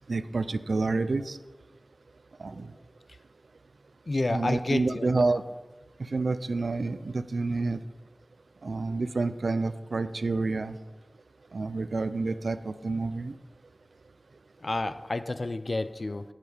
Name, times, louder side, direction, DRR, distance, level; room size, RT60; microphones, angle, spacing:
voice 1, 0.1-1.4 2.4-2.7 4.3-5.4 6.1-7.8 8.6-10.8 11.5-13.3, right 3 dB, 90° right, 13 dB, 0.5 m, -28 dB
voice 2, 4.1-5.2 14.6-16.2, left 2 dB, 55° left, 13 dB, 0.6 m, -30 dB
13.5 x 7.5 x 5.0 m, 1.2 s
wide cardioid pair, 50°, 0 cm